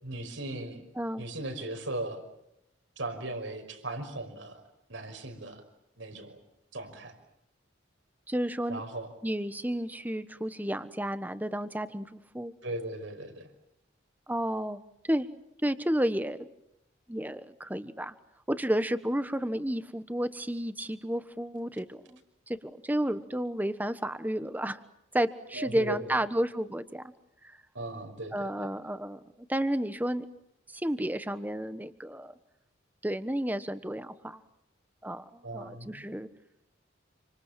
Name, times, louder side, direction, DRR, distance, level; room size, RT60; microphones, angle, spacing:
voice 1, 0.0-0.9 1.2-2.2 3.0-4.6 4.9-5.6 6.0-6.4 6.7-7.1 8.7-9.1 12.6-13.5 25.5-26.2 27.7-28.5 35.4-36.0, right 1 dB, 80° right, 5 dB, 5.9 m, -37 dB
voice 2, 1.0-1.3 8.3-8.8 9.2-12.5 14.3-15.3 15.6-16.5 17.1-18.2 18.5-22.2 22.5-24.8 25.1-27.1 27.4-27.5 28.3-29.2 29.5-30.3 30.7-32.3 33.0-34.4 35.0-36.3, right 1 dB, 10° right, 12 dB, 1.2 m, -31 dB
28.5 x 26.0 x 7.6 m, 0.83 s
head